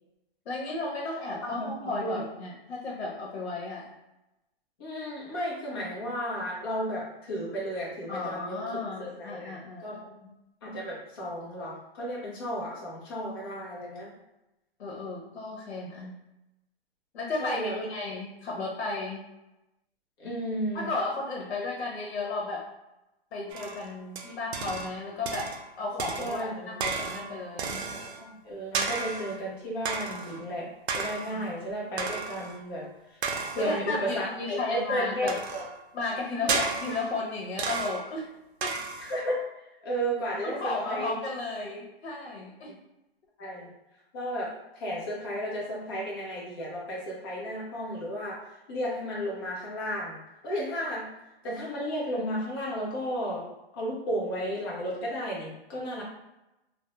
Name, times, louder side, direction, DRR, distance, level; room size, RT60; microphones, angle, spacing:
voice 1, 0.4-3.9 8.1-9.9 10.2-10.3 14.8-16.1 17.1-19.2 20.7-22.6 23.3-25.5 25.8-27.9 31.3-31.4 33.6-35.4 35.9-38.2 38.6-38.8 40.4-42.7, left 3 dB, 80° left, -3 dB, 0.8 m, -34 dB
voice 2, 1.4-2.3 4.8-8.6 9.0-9.5 9.8-10.0 10.6-14.1 17.4-17.8 20.2-20.9 25.9-26.7 28.1-30.7 30.9-33.2 33.5-35.6 36.4-36.6 39.0-39.4 39.8-41.1 43.4-43.7 44.1-48.4 48.7-51.1 51.4-53.4 53.7-56.0, equal, 25° left, -6 dB, 0.5 m, -33 dB
sound 1, 23.5-25.0 25.3-25.7 26.0-28.3 28.7-29.4 29.8-30.4 30.9-31.5 32.0-32.6 33.2-33.9 35.3-35.8 36.5-37.2 37.6-38.2 38.6-39.2, right 4 dB, 85° right, 0.5 m, -33 dB
2.3 x 2.0 x 2.9 m, 0.95 s
hypercardioid pair, 165°, 31 cm